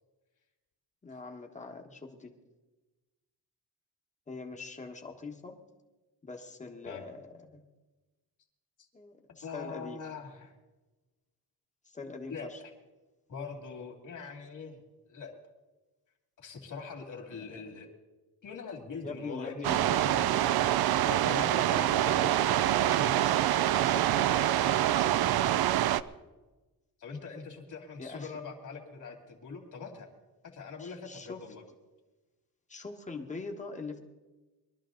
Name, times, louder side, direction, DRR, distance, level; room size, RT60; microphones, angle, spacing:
voice 1, 1.0-2.3 4.3-5.6 6.2-7.7 8.9-10.0 11.8-12.6 17.4-17.6 19.0-20.1 21.1-23.5 23.8-24.5 24.9-25.2 28.0-28.3 30.8-31.4 32.7-34.0, left 3 dB, 20° left, 3 dB, 1.3 m, -43 dB
voice 2, 9.4-10.5 12.3-12.5 13.3-14.8 15.1-15.3 16.4-17.9 18.4-20.4 21.1-22.4 27.0-30.1 30.4-31.6, left 5 dB, 50° left, 2 dB, 2.5 m, -43 dB
sound 1, 19.6-26.0, right 12 dB, 65° right, 0.5 m, -26 dB
22.0 x 12.5 x 3.9 m, 1.2 s
wide cardioid pair, 170°, 40 cm